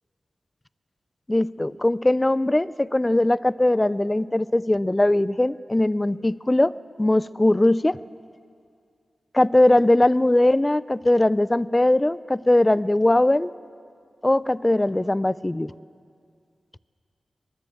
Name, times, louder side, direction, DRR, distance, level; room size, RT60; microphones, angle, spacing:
voice 1, 1.3-6.7 7.0-8.0 9.3-13.5 14.2-15.7, left 1 dB, 25° left, 18 dB, 0.6 m, -20 dB
22.0 x 20.5 x 7.7 m, 2.3 s
cardioid pair, 45°, 0 cm